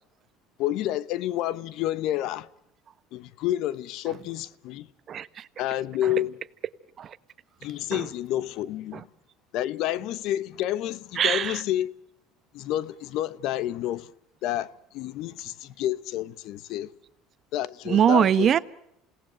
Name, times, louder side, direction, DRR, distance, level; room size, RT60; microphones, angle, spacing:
voice 1, 0.6-2.5 3.1-4.9 5.6-6.4 7.6-9.0 9.5-11.9 12.5-14.1 14.4-16.9 17.5-18.6, left 13 dB, 65° left, 1.0 m, -29 dB
voice 2, 5.1-5.4 7.0-7.1 7.9-8.0 11.2-11.6 17.9-18.6, right 9 dB, 45° right, 1.1 m, -22 dB
28.5 x 18.0 x 7.8 m
supercardioid pair, 105°, 0 cm